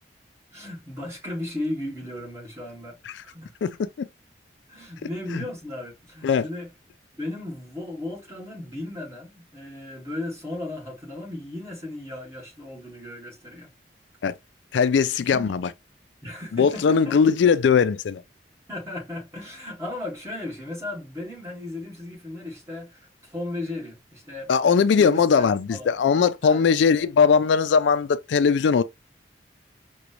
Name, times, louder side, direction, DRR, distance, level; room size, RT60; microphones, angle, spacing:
voice 1, 0.5-3.5 4.7-6.7 7.1-13.7 15.2-15.5 16.2-17.1 18.7-24.5 25.0-25.9 26.4-26.6, left 1 dB, 15° right, 2.1 m, -35 dB
voice 2, 3.6-4.1 5.3-5.4 6.2-6.5 14.2-14.3 14.7-15.6 16.5-18.2 24.5-28.8, left 6 dB, 80° left, 0.3 m, -20 dB
5.0 x 2.3 x 2.9 m
head